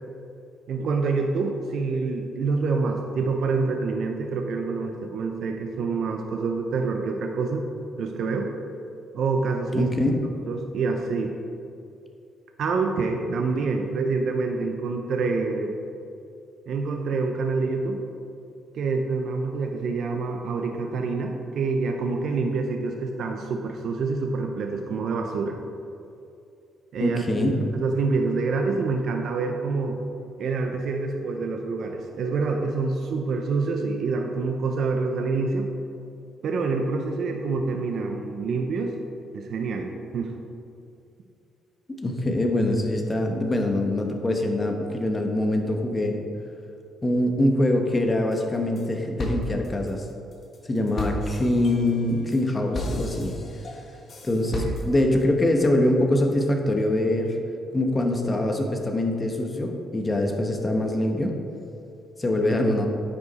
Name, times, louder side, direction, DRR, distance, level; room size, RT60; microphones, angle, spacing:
voice 1, 0.7-7.6 8.0-8.5 9.1-9.9 10.5-11.3 12.6-15.7 16.7-18.1 18.7-25.6 26.9-30.0 30.4-35.7 36.4-39.0 39.3-40.3 54.3-54.8, right 4 dB, 65° right, 3 dB, 0.6 m, -27 dB
voice 2, 9.7-10.1 27.0-27.6 42.0-46.2 47.0-50.1 50.7-53.3 54.2-57.4 57.7-61.4 62.2-62.9, left 1 dB, 25° left, 3 dB, 1.1 m, -24 dB
sound 1, 48.3-48.9 49.2-55.2, left 1 dB, 50° left, 1.4 m, -34 dB
9.5 x 5.2 x 4.1 m, 2.6 s
cardioid pair, 90°, 0 cm